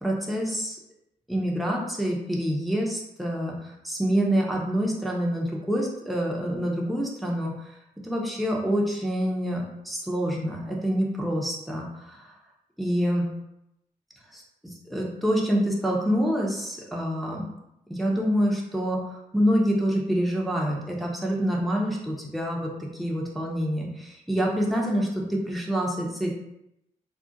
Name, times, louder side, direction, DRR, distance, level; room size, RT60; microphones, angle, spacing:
voice 1, 0.0-0.8 1.3-7.5 8.0-12.3 12.8-13.3 14.3-14.4 14.9-17.4 17.9-19.0 19.3-22.7 23.0-26.3, equal, ahead, -2 dB, 0.7 m, -26 dB
2.4 x 2.0 x 3.9 m, 0.84 s
cardioid pair, 60°, 14 cm